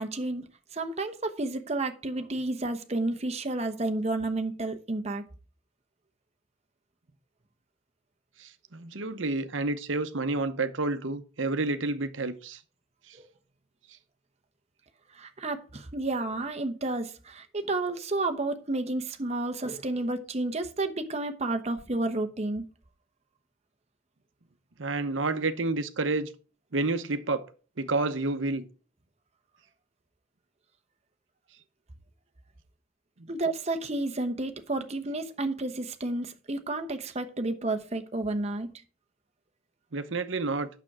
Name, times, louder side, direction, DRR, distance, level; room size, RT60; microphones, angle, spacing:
voice 1, 0.0-5.2 13.2-13.3 15.1-22.6 33.3-38.7, right 2 dB, 35° right, 1.0 m, -31 dB
voice 2, 8.4-12.6 13.1-13.2 24.8-26.3 26.7-27.5 27.8-28.6 33.2-33.3 39.9-40.7, right 3 dB, 70° right, 0.9 m, -29 dB
8.9 x 6.8 x 4.8 m
head